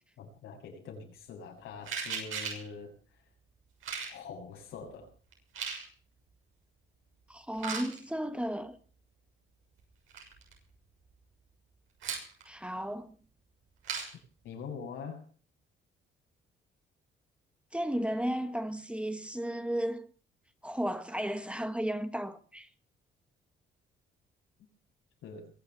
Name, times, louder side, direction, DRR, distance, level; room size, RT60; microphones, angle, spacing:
voice 1, 0.2-3.0 4.1-5.1 14.4-15.2 25.2-25.5, left 5 dB, 85° left, 7.2 m, -44 dB
sound 1, 1.8-2.7 3.8-4.2 5.3-5.8 7.5-8.0 9.8-9.9 10.1-10.5 12.0-12.4 13.8-14.1, right 6 dB, 85° right, 6.5 m, -36 dB
voice 2, 7.3-8.8 12.4-13.1 17.7-20.1 20.6-22.7, equal, 5° right, 1.5 m, -34 dB
23.0 x 7.7 x 7.2 m
cardioid pair, 90°, 20 cm